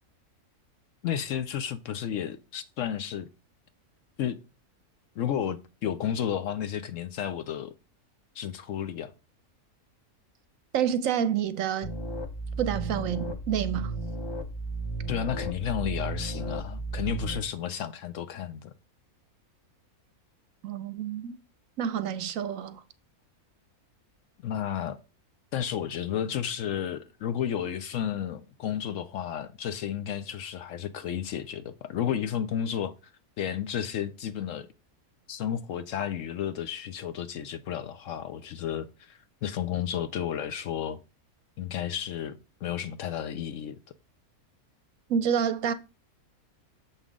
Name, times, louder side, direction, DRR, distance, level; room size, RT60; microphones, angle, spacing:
voice 1, 1.0-3.3 4.2-4.4 5.2-7.7 8.3-9.1 15.1-18.7 24.4-25.0 25.5-32.9 33.4-34.7 35.3-41.0 41.6-43.8, left 9 dB, 70° left, 0.8 m, -32 dB
voice 2, 10.7-11.9 12.6-13.9 20.6-21.4 21.8-22.8 45.1-45.7, right 8 dB, 70° right, 0.9 m, -28 dB
sound 1, 11.8-17.4, right 2 dB, 30° left, 0.5 m, -34 dB
7.1 x 5.5 x 3.6 m
omnidirectional pair, 1.6 m